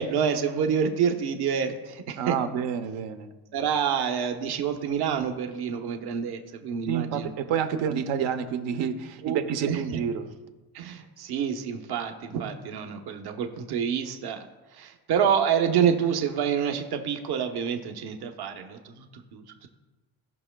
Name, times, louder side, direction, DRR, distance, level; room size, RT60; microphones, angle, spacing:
voice 1, 0.0-2.3 3.5-7.3 7.9-8.0 9.2-9.4 9.7-10.0 10.7-14.4 14.7-19.7, right 7 dB, 60° right, 5 dB, 1.0 m, -27 dB
voice 2, 2.2-3.3 6.8-10.3, right 8 dB, 85° right, 8 dB, 1.0 m, -29 dB
17.0 x 6.0 x 2.3 m, 1.2 s
cardioid pair, 125°, 44 cm